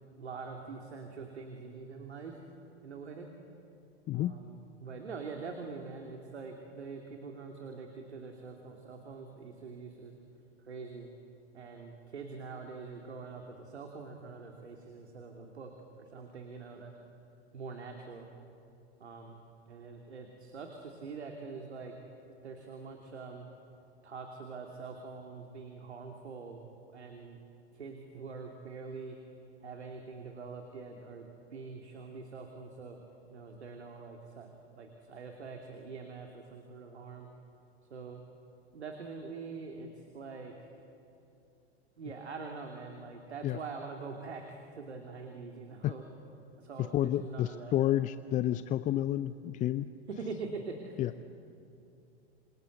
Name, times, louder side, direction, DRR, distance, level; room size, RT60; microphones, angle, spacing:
voice 1, 0.2-2.4 2.8-3.3 4.1-10.1 10.6-11.1 11.5-15.7 16.0-16.9 17.5-18.3 19.0-19.4 19.7-21.9 22.4-23.5 24.0-26.6 26.9-27.4 27.7-29.2 29.6-33.0 33.3-34.5 34.8-37.3 37.9-38.2 38.7-40.5 42.0-46.0 46.6-47.7 50.1-51.2, right 4 dB, 80° right, 3 dB, 2.9 m, -44 dB
voice 2, 4.1-4.4 43.4-43.6 45.8-45.9 46.9-49.9 51.0-51.1, left 13 dB, 25° left, 14 dB, 0.5 m, -30 dB
28.0 x 26.0 x 8.0 m, 2.7 s
hypercardioid pair, 100°, 33 cm